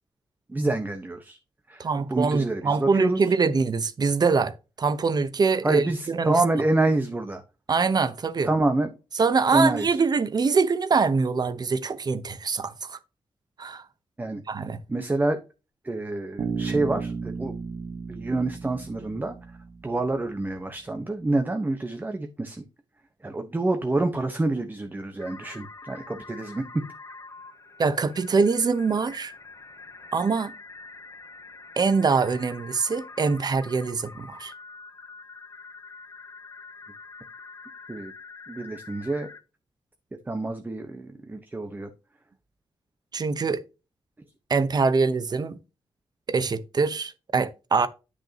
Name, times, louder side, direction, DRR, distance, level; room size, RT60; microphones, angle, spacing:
voice 1, 0.5-1.4 1.7-3.2 5.6-7.4 8.4-8.9 9.5-10.0 14.2-14.4 14.9-15.4 15.8-17.5 18.1-19.4 19.8-22.6 23.2-26.6 37.9-38.1 38.5-39.3 40.3-41.9, right 2 dB, 20° right, 1.1 m, -27 dB
voice 2, 1.8-6.3 7.7-8.5 9.2-13.0 13.6-13.8 14.5-14.8 27.8-29.3 30.1-30.5 31.8-34.5 43.1-43.6 44.5-45.6 46.3-47.9, right 4 dB, 40° right, 0.9 m, -24 dB
Bass guitar, 16.4-20.3, right 5 dB, 65° right, 1.2 m, -34 dB
sound 1, 25.2-39.4, left 4 dB, 30° left, 0.8 m, -45 dB
10.5 x 6.2 x 2.9 m
wide cardioid pair, 115°, 10 cm